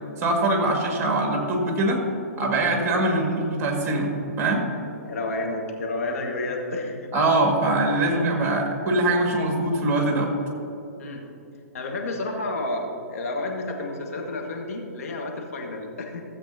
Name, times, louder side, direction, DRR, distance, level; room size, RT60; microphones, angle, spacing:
voice 1, 0.2-2.0 2.4-4.7 7.1-10.3, right 2 dB, 25° right, 1 dB, 2.0 m, -23 dB
voice 2, 3.0-3.3 5.0-7.1 11.0-11.2 11.7-16.2, left 2 dB, 65° left, 1 dB, 1.6 m, -31 dB
16.0 x 7.8 x 2.8 m, 2.9 s
figure-of-eight pair, 120°, 9 cm